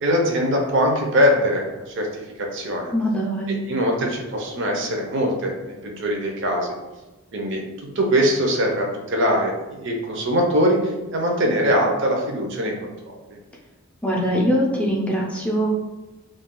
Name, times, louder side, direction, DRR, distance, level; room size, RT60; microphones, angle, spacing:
voice 1, 0.0-2.9 3.5-6.7 7.3-7.6 8.0-13.2, equal, 55° right, 1 dB, 0.6 m, -22 dB
voice 2, 2.9-3.6 14.0-15.8, equal, 5° left, -3 dB, 0.4 m, -22 dB
2.3 x 2.3 x 3.7 m, 1.1 s
head